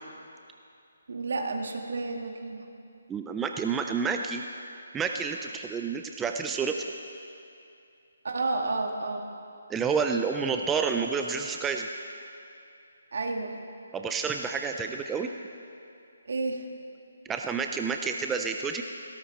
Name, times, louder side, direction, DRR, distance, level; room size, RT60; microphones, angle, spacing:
voice 1, 1.1-2.7 8.2-9.3 13.1-13.6 16.3-16.7, right 3 dB, 65° right, 3 dB, 1.9 m, -31 dB
voice 2, 3.1-4.5 4.9-6.8 9.7-11.9 13.9-15.3 17.3-18.8, right 5 dB, 5° right, 4 dB, 0.3 m, -29 dB
18.5 x 17.0 x 4.3 m, 2.6 s
hypercardioid pair, 175°, 0 cm